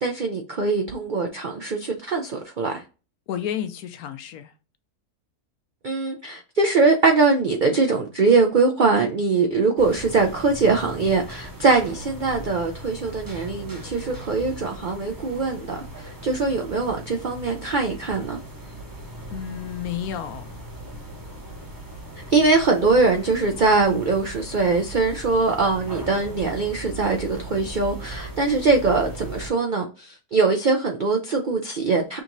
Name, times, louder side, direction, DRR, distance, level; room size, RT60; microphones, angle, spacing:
voice 1, 0.0-2.8 5.8-18.4 22.3-32.2, right 3 dB, 70° right, 0.4 m, -22 dB
voice 2, 3.3-4.5 19.3-20.4, left 9 dB, 75° left, 1.0 m, -31 dB
sound 1, 9.8-29.5, right 1 dB, 20° right, 0.6 m, -38 dB
6.2 x 2.9 x 2.6 m
omnidirectional pair, 1.6 m